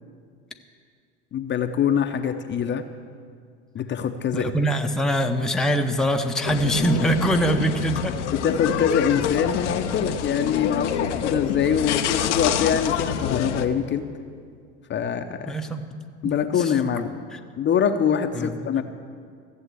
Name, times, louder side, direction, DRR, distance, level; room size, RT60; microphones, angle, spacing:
voice 1, 1.3-2.8 3.7-4.5 8.4-14.1 14.9-15.5 16.2-17.1 17.6-18.8, left 8 dB, 30° left, 7 dB, 0.8 m, -24 dB
voice 2, 4.3-8.2 15.5-15.9 16.2-16.8 17.3-17.4 18.3-18.8, right 1 dB, ahead, 4 dB, 0.8 m, -24 dB
sound 1, 6.4-13.7, left 9 dB, 85° left, 0.9 m, -27 dB
15.0 x 7.2 x 8.3 m, 2.1 s
hypercardioid pair, 95°, 35 cm